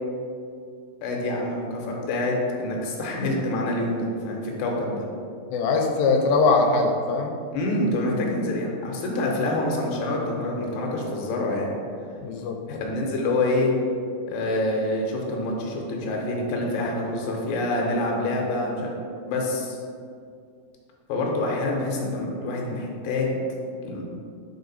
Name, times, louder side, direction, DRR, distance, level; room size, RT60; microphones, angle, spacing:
voice 1, 1.0-5.0 7.5-11.7 12.7-13.7 14.3-18.9 19.3-19.8 21.1-23.3 23.8-24.0, left 2 dB, 70° left, -1 dB, 2.2 m, -26 dB
voice 2, 5.5-7.3 12.2-12.6, left 3 dB, 90° left, 3 dB, 2.3 m, -21 dB
5.0 x 4.8 x 4.0 m, 2.3 s
omnidirectional pair, 4.0 m